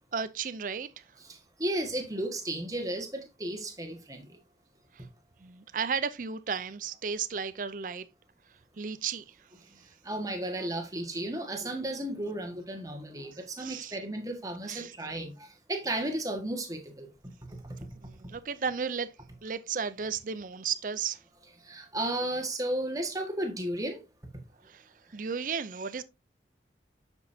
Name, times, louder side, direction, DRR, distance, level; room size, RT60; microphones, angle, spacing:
voice 1, 0.1-1.0 4.9-5.1 5.4-8.1 8.8-9.4 13.6-14.0 14.7-14.9 18.0-19.1 19.4-21.2 24.6-26.0, right 6 dB, 50° right, 0.5 m, -34 dB
voice 2, 1.3-4.4 10.0-17.1 17.5-17.9 21.6-24.0, right 1 dB, 20° right, 1.6 m, -34 dB
9.4 x 6.2 x 2.7 m
head